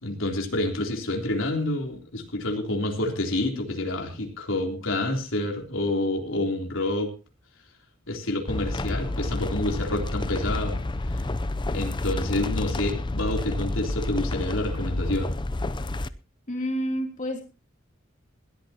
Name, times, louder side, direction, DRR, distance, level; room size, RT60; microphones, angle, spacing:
voice 1, 0.0-7.1 8.1-10.8 11.1-11.2 11.7-15.3, left 1 dB, 80° left, 3.4 m, -28 dB
sound 1, 8.5-16.1, left 2 dB, 25° left, 0.6 m, -29 dB
voice 2, 16.5-17.4, equal, 40° left, 3.1 m, -29 dB
21.0 x 13.5 x 2.9 m
head